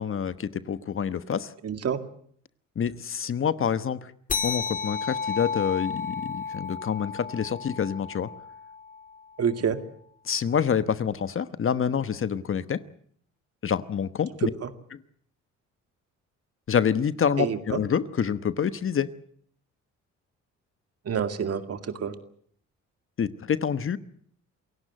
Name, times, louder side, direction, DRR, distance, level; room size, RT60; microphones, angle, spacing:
voice 1, 0.0-1.5 2.8-4.1 4.4-8.3 10.2-12.8 13.6-14.5 14.9-15.0 16.7-19.1 23.2-24.0, left 7 dB, 45° left, 1.2 m, -27 dB
voice 2, 1.6-2.0 9.4-9.8 14.6-14.7 17.4-17.6 21.1-22.1, right 7 dB, 55° right, 2.2 m, -27 dB
sound 1, 4.3-9.2, left 5 dB, 25° left, 2.2 m, -33 dB
28.0 x 17.0 x 7.8 m
cardioid pair, 90°, 30 cm